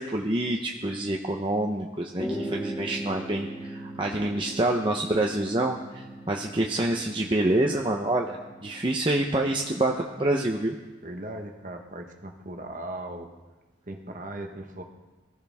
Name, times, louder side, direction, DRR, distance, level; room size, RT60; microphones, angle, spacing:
voice 1, 0.0-10.8, right 1 dB, 25° right, 0 dB, 0.9 m, -27 dB
sound 1, 2.1-9.9, right 1 dB, 5° left, 2.1 m, -39 dB
voice 2, 11.0-13.3 13.8-14.8, right 1 dB, 40° right, 3 dB, 1.4 m, -38 dB
23.5 x 14.5 x 3.6 m, 1.2 s
head